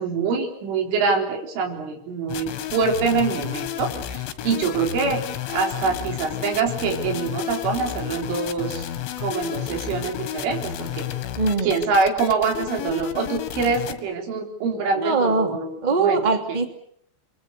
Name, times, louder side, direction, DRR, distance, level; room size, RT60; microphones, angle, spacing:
voice 1, 0.0-5.2 5.5-8.9 9.2-11.1 11.6-16.2, right 4 dB, 75° right, 3 dB, 6.4 m, -25 dB
sound 1, 2.3-14.0, left 11 dB, 75° left, 4.2 m, -31 dB
voice 2, 11.4-11.8 14.9-16.6, right 3 dB, 20° right, 6 dB, 1.3 m, -22 dB
28.0 x 23.5 x 6.8 m, 0.67 s
omnidirectional pair, 5.7 m